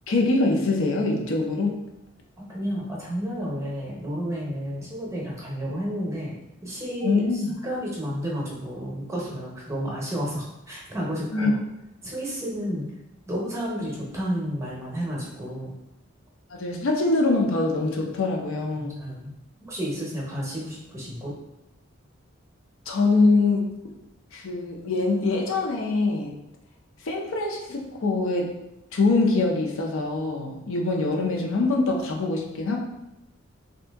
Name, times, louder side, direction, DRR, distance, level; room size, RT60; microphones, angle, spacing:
voice 1, 0.1-1.7 7.0-7.5 11.3-11.5 16.5-19.0 22.9-23.8 24.3-26.3 27.0-28.5 28.9-32.8, left 3 dB, 75° left, 0 dB, 0.5 m, -24 dB
voice 2, 2.4-6.3 6.6-11.6 12.0-12.9 13.3-15.7 18.8-19.3 19.6-21.3, equal, 15° right, -4 dB, 0.7 m, -31 dB
2.7 x 2.6 x 3.4 m, 0.91 s
head